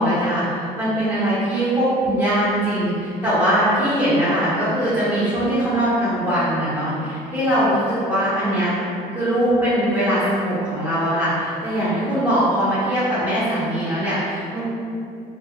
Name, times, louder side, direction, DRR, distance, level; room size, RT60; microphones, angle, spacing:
voice 1, 0.0-8.7 9.1-14.7, equal, 15° right, -14 dB, 0.8 m, -21 dB
2.4 x 2.3 x 2.8 m, 2.5 s
cardioid pair, 110°, 17 cm